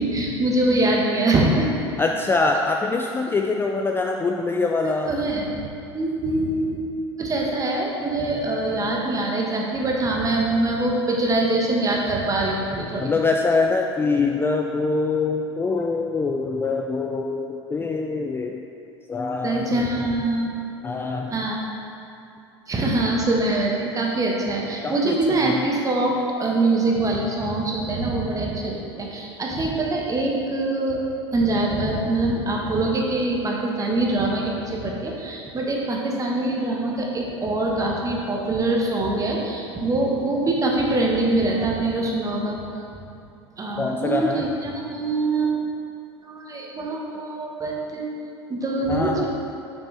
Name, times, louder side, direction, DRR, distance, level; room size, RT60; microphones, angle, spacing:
voice 1, 0.0-1.7 5.1-5.5 5.9-13.1 19.4-20.5 21.3-21.6 22.7-31.1 31.3-42.6 42.9-43.0 43.6-45.5 46.2-48.1 48.5-49.3, right 2 dB, 25° right, -1 dB, 1.3 m, -24 dB
voice 2, 2.0-5.1 13.0-18.6 19.1-20.1 20.8-21.4 24.8-25.2 25.4-25.7 43.8-44.5 48.9-49.3, left 3 dB, 15° left, 2 dB, 0.4 m, -24 dB
6.8 x 6.0 x 3.4 m, 2.7 s
hypercardioid pair, 80°, 15 cm